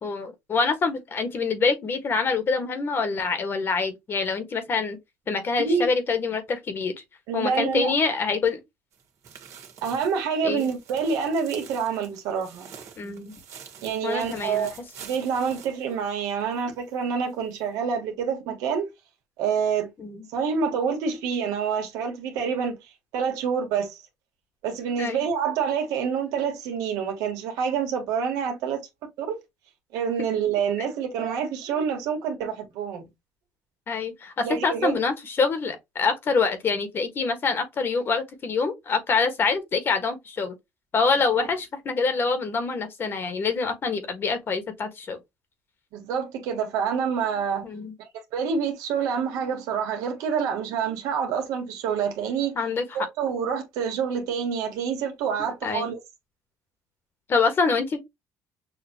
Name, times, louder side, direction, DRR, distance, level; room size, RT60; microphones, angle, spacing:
voice 1, 0.0-5.0 5.3-6.9 7.3-8.6 10.4-10.7 13.0-13.3 14.0-14.7 20.0-20.3 25.0-25.2 33.9-40.5 40.9-45.2 47.6-47.9 52.5-52.8 55.6-55.9 57.3-58.0, left 4 dB, 40° left, 1.5 m, -25 dB
voice 2, 5.6-5.9 7.3-7.9 9.8-12.7 13.8-14.7 15.0-18.9 19.4-19.9 20.3-22.8 23.1-24.0 24.6-28.8 29.2-29.4 29.9-33.0 34.4-34.9 41.4-41.5 45.9-47.6 48.3-52.5 52.9-56.0, right 6 dB, 90° right, 1.6 m, -27 dB
sound 1, 8.9-16.6 16.9-17.0 17.5-17.6, right 7 dB, 60° right, 1.7 m, -47 dB
6.7 x 2.8 x 2.9 m
cardioid pair, 115°, 6 cm